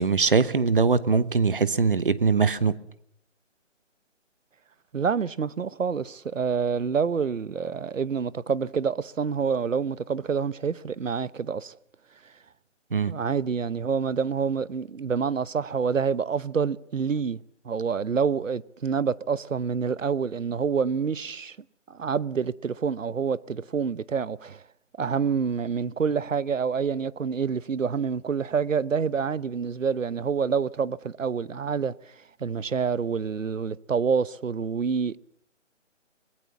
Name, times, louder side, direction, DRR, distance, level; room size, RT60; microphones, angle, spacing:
voice 1, 0.0-2.8 12.9-13.1, right 5 dB, 45° right, 1.1 m, -22 dB
voice 2, 4.9-11.8 12.2-12.3 13.1-21.6 21.9-24.6 25.0-32.1 32.4-35.2, right 6 dB, 85° right, 1.0 m, -27 dB
25.0 x 20.0 x 7.1 m
hypercardioid pair, 175°, 37 cm